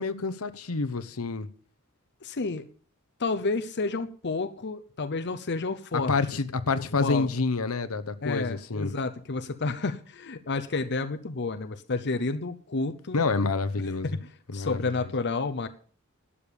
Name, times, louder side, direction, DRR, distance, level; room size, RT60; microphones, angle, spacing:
voice 1, 0.0-1.5 6.1-8.9 13.1-14.1 14.5-14.8, left 3 dB, 80° left, 1.0 m, -28 dB
voice 2, 2.2-2.7 3.2-6.2 6.7-7.3 8.2-13.2 14.0-15.7, left 3 dB, 55° left, 0.8 m, -30 dB
12.0 x 8.6 x 7.0 m
head